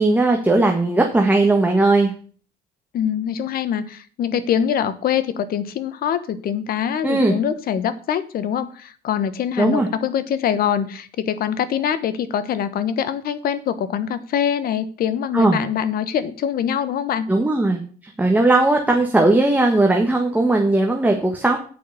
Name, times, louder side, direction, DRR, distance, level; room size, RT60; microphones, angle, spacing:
voice 1, 0.0-2.1 7.0-7.3 9.6-9.9 15.3-15.6 17.3-17.8 18.2-21.6, right 2 dB, 10° right, 2 dB, 1.6 m, -17 dB
voice 2, 2.9-17.3, left 9 dB, 60° left, 13 dB, 1.2 m, -24 dB
8.4 x 6.1 x 8.2 m, 0.42 s
cardioid pair, 110°, 17 cm